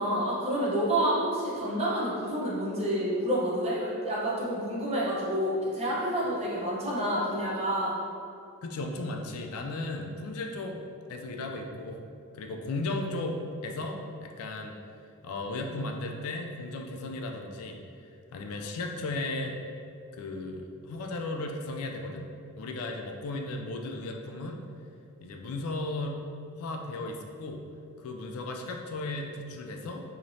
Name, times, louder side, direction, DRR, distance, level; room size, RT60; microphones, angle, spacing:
voice 1, 0.0-8.0, right 1 dB, 30° right, -6 dB, 0.7 m, -28 dB
voice 2, 8.6-10.8 11.1-12.1 12.3-14.8 15.2-17.8 18.3-19.6 20.2-22.3 22.6-24.6 25.2-26.2 26.6-27.6 28.0-30.0, left 2 dB, 70° left, 3 dB, 0.3 m, -35 dB
3.1 x 2.8 x 2.6 m, 2.5 s
head